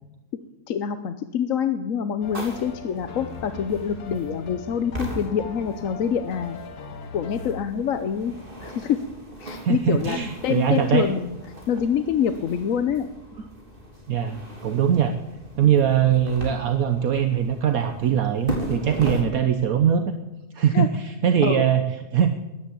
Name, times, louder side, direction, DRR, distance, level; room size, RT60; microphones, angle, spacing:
voice 1, 0.7-6.6 7.1-8.3 8.6-9.0 9.4-11.4 11.7-13.1 20.7-20.9 21.4-21.6, left 8 dB, 60° left, 9 dB, 1.1 m, -26 dB
sound 1, 2.2-7.6, left 6 dB, 90° left, 1.7 m, -40 dB
sound 2, 2.2-19.2, right 1 dB, 35° right, 3.3 m, -38 dB
voice 2, 9.6-11.1 14.1-15.2 15.6-20.2 20.5-21.8 22.1-22.3, right 8 dB, 65° right, 7 dB, 1.4 m, -21 dB
14.5 x 11.0 x 8.5 m, 1.1 s
omnidirectional pair, 1.7 m